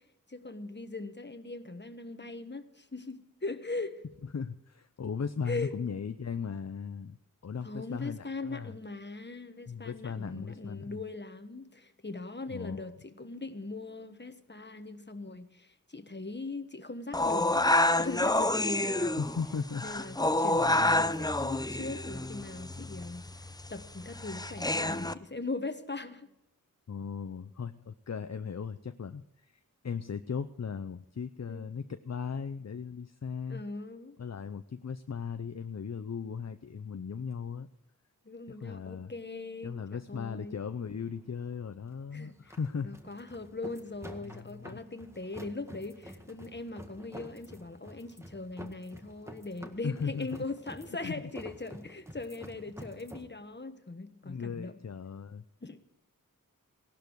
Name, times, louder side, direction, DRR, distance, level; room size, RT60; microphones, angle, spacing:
voice 1, 0.3-4.0 5.5-5.7 7.6-19.2 19.8-23.3 23.7-26.3 31.5-31.7 33.5-34.2 38.2-40.6 42.1-42.6 42.8-54.8 55.6-55.8, left 3 dB, 30° left, 9 dB, 1.4 m, -40 dB
voice 2, 4.3-7.2 7.4-8.7 9.7-11.0 12.5-12.9 19.2-19.9 26.9-33.6 34.2-37.7 38.5-39.1 39.6-43.0 44.2-44.8 49.8-50.4 51.0-51.2 54.2-55.4, left 6 dB, 50° left, 10 dB, 0.6 m, -37 dB
sound 1, 17.1-25.1, left 1 dB, 10° left, 0.6 m, -28 dB
sound 2, 39.9-53.3, equal, 10° right, 1.7 m, -49 dB
17.0 x 12.0 x 4.7 m, 0.87 s
wide cardioid pair, 45°, 34 cm